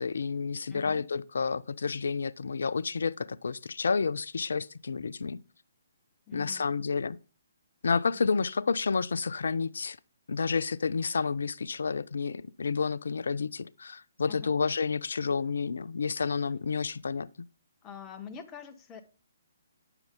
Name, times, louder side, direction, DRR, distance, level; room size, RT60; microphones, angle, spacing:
voice 1, 0.0-5.4 6.3-7.2 7.8-10.0 10.3-17.3, left 5 dB, 60° left, 0.4 m, -30 dB
voice 2, 0.7-1.1 6.3-6.8 8.1-8.5 14.3-14.6 16.3-16.4 17.8-19.0, left 7 dB, 20° left, 0.9 m, -46 dB
8.8 x 6.9 x 3.7 m
figure-of-eight pair, 130°, 0 cm